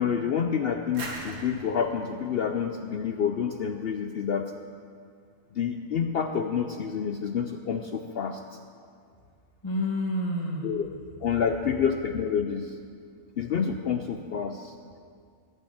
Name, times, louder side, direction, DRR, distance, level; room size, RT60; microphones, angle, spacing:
voice 1, 0.0-4.5 5.5-8.4 10.6-10.9 11.2-12.8 13.4-14.7, left 7 dB, 65° left, 6 dB, 0.6 m, -28 dB
sound 1, 0.9-3.7, right 2 dB, 90° right, 1.9 m, -42 dB
voice 2, 9.6-10.8 11.2-11.3 11.6-11.9, left 1 dB, 20° left, 0 dB, 1.0 m, -30 dB
12.5 x 8.2 x 6.3 m, 2.2 s
omnidirectional pair, 1.5 m